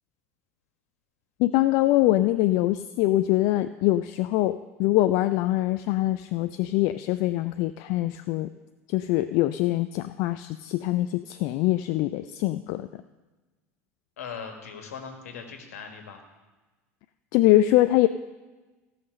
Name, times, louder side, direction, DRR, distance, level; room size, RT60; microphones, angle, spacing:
voice 1, 1.4-8.5 8.9-12.9 17.3-18.1, left 16 dB, 55° left, 11 dB, 0.4 m, -23 dB
voice 2, 14.2-16.2, left 6 dB, 75° left, 4 dB, 1.7 m, -39 dB
16.0 x 5.8 x 6.6 m, 1.2 s
hypercardioid pair, 75°, 8 cm